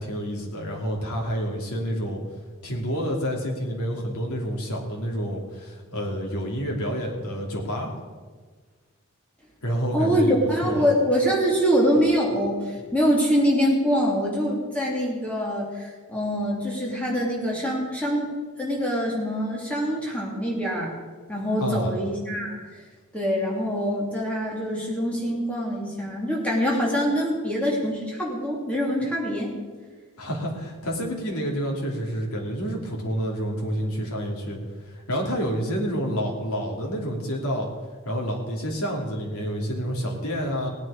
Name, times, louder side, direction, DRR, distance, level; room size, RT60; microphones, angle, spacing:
voice 1, 0.0-2.3 2.6-7.9 9.6-10.9 21.6-22.0 30.2-34.6 34.9-37.7 38.0-40.7, equal, 85° left, -1 dB, 2.8 m, -28 dB
voice 2, 9.9-18.3 18.6-20.9 21.3-22.6 23.1-29.5 35.8-36.0, equal, 5° left, -4 dB, 2.9 m, -24 dB
17.5 x 9.5 x 5.0 m, 1.5 s
head